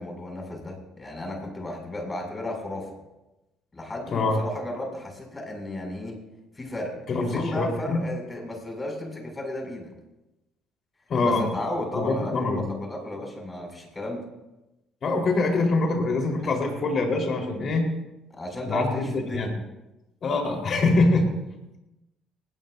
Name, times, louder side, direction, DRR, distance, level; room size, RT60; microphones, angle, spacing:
voice 1, 0.0-2.9 3.7-6.2 6.6-9.9 11.2-14.2 16.4-16.5 18.3-19.5, left 1 dB, 25° left, 1 dB, 6.9 m, -34 dB
voice 2, 7.1-8.0 11.1-11.5 11.9-12.6 15.0-17.9 18.6-19.5 20.2-21.3, left 3 dB, 50° left, 1 dB, 4.2 m, -24 dB
20.0 x 18.0 x 2.7 m, 0.98 s
hypercardioid pair, 55°, 0 cm